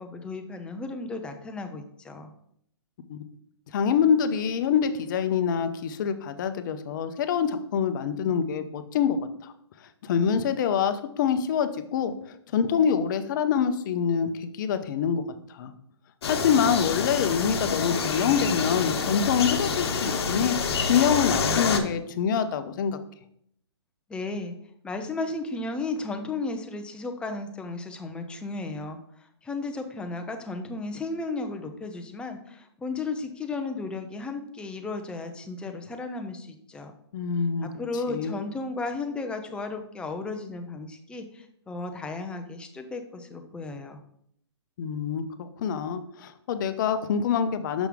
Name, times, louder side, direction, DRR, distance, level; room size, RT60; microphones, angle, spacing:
voice 1, 0.0-2.3 24.1-24.6 24.8-36.9 37.6-44.0, left 3 dB, 5° left, 5 dB, 0.6 m, -34 dB
voice 2, 3.7-9.5 10.0-12.1 12.5-15.2 15.5-15.7 16.3-23.0 37.1-37.7 38.1-38.3 44.8-45.3 45.6-47.9, left 7 dB, 45° left, 10 dB, 0.7 m, -25 dB
sound 1, 16.2-21.8, left 5 dB, 65° left, 1.0 m, -27 dB
6.0 x 5.6 x 3.5 m, 0.69 s
hypercardioid pair, 140°, 14 cm